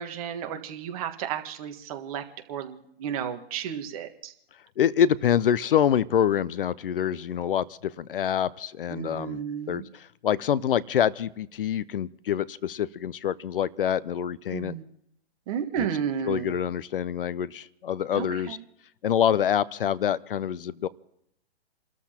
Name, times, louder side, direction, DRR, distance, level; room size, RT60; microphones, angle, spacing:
voice 1, 0.0-4.3 8.9-9.8 14.5-14.9 15.5-16.6 18.1-18.6, right 8 dB, 35° right, 5 dB, 1.6 m, -33 dB
voice 2, 4.8-9.4 9.7-14.7 15.8-15.9 16.3-18.6 19.0-20.9, left 9 dB, 60° left, 19 dB, 0.6 m, -26 dB
29.5 x 13.5 x 2.9 m, 0.73 s
hypercardioid pair, 145°, 32 cm